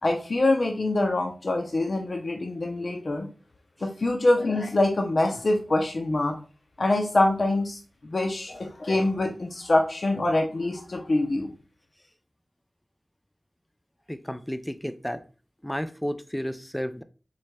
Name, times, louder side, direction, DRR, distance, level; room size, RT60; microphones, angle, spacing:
voice 1, 0.0-3.3 3.8-6.4 6.8-11.5, left 2 dB, 70° left, 2 dB, 0.6 m, -25 dB
voice 2, 14.1-15.2 15.6-17.0, equal, 10° left, 11 dB, 0.4 m, -32 dB
6.1 x 3.3 x 2.3 m, 0.36 s
wide cardioid pair, 45°, 0 cm